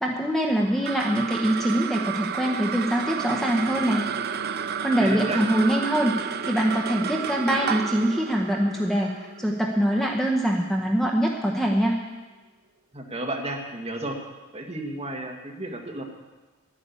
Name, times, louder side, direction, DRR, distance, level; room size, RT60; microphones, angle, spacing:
voice 1, 0.0-4.0 4.5-12.0, right 1 dB, ahead, 0 dB, 0.9 m, -24 dB
sound 1, 0.6-11.2, right 7 dB, 45° right, 0.5 m, -32 dB
voice 2, 5.0-5.4 12.9-14.2 14.5-16.0, right 2 dB, 30° right, 0 dB, 1.8 m, -32 dB
11.5 x 9.8 x 8.5 m, 1.2 s
head